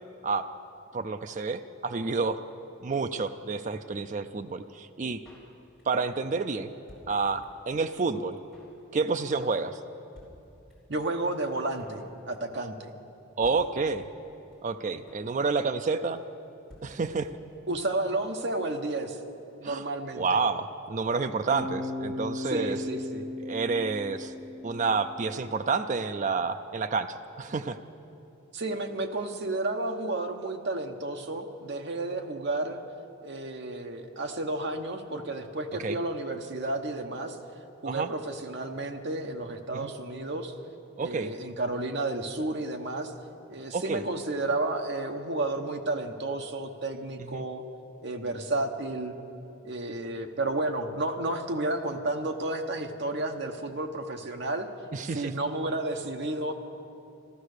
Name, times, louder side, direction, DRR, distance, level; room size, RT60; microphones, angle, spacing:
voice 1, 0.9-2.4 2.8-5.2 5.9-6.7 7.1-8.4 8.9-9.8 13.4-14.1 14.6-16.2 16.8-17.4 19.6-19.9 20.1-22.8 23.4-24.3 24.6-27.8 35.8-36.0 37.9-38.1 39.7-39.9 41.0-41.3 43.7-44.0 47.2-47.4 54.9-55.3, right 4 dB, 35° right, 8 dB, 0.4 m, -29 dB
Drum kit, 5.2-6.1 6.3-6.4 6.6-7.7 8.0-8.1 8.2-8.8 9.1-9.3 9.6-9.7 9.9-10.0 10.1-11.0 11.2-11.3 11.5-12.1 12.3-12.6 12.9-13.0 13.2-13.3 13.4-14.3 14.5-14.6 14.8-15.3 15.6-15.9 16.1-16.2 16.4-16.5 16.7-17.5 17.8-17.9 18.1-18.2, equal, 5° left, 3.7 m, -54 dB
voice 2, 10.9-12.9 17.7-19.2 19.6-20.2 22.4-23.2 28.5-32.8 33.2-37.4 37.8-40.6 41.0-43.1 43.5-47.6 48.0-49.2 49.6-54.7 55.0-56.5, right 2 dB, 50° right, 4 dB, 0.9 m, -32 dB
Bass guitar, 21.5-25.6, left 2 dB, 80° right, 2.2 m, -37 dB
14.0 x 13.0 x 6.6 m, 2.8 s
head